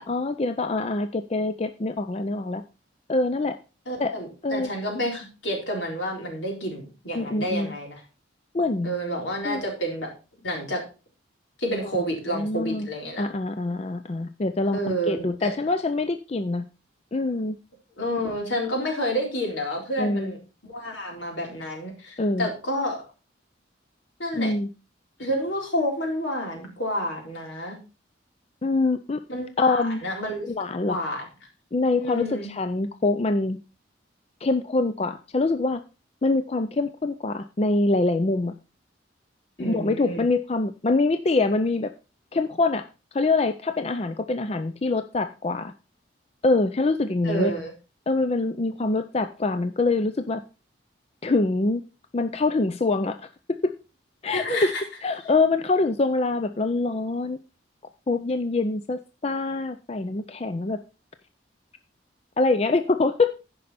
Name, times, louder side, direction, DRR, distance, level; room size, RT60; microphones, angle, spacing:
voice 1, 0.1-2.6 3.1-3.6 4.0-4.1 4.4-4.7 7.1-7.7 8.5-8.9 9.4-9.6 11.8-11.9 12.3-12.9 13.2-16.7 17.1-17.6 20.0-20.3 22.2-22.5 24.3-24.7 28.6-29.2 29.6-30.0 30.5-31.0 31.7-33.6 34.4-35.8 36.2-38.5 39.6-41.9 42.3-42.8 43.1-45.7 46.4-47.5 48.1-50.4 51.2-51.8 52.1-53.2 53.6-53.7 54.2-54.7 55.0-57.4 58.1-60.8 62.4-63.3, left 3 dB, 35° left, 9 dB, 0.4 m, -24 dB
voice 2, 3.9-8.0 8.8-10.1 10.4-10.8 11.6-13.2 14.7-15.5 18.0-20.4 20.7-23.0 24.2-24.5 25.2-27.8 29.3-30.5 30.8-31.3 32.0-32.5 39.6-40.2 47.2-47.7 54.3-54.8, equal, 75° left, 0 dB, 4.1 m, -29 dB
15.0 x 5.5 x 4.2 m, 0.32 s
head